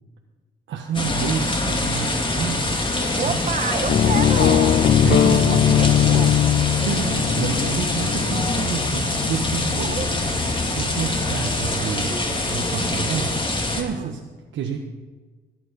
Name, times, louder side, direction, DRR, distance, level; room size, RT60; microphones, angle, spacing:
voice 1, 0.7-2.7 3.2-3.5 5.0-5.8 6.8-10.0 10.5-12.2 12.5-13.4 13.7-14.2 14.5-14.8, right 7 dB, 70° right, 1 dB, 1.2 m, -28 dB
sound 1, 0.9-13.8, left 2 dB, 25° left, 2.6 m, -25 dB
voice 2, 3.2-4.9 5.8-6.3 9.8-10.1 12.7-12.9 13.9-14.1, right 6 dB, 40° right, 9 dB, 1.3 m, -29 dB
sound 2, 3.9-11.8, left 10 dB, 45° left, 0.4 m, -21 dB
18.0 x 9.3 x 5.4 m, 1.4 s
cardioid pair, 90°, 20 cm